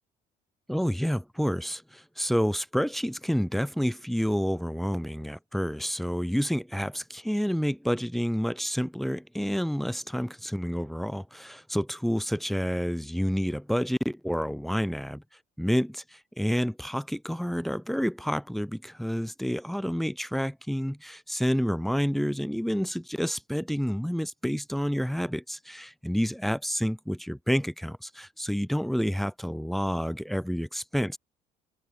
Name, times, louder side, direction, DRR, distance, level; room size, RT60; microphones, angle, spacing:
voice 1, 0.7-15.2 15.6-31.2, equal, ahead, 3.8 m, -29 dB
cardioid pair, 110°, 17 cm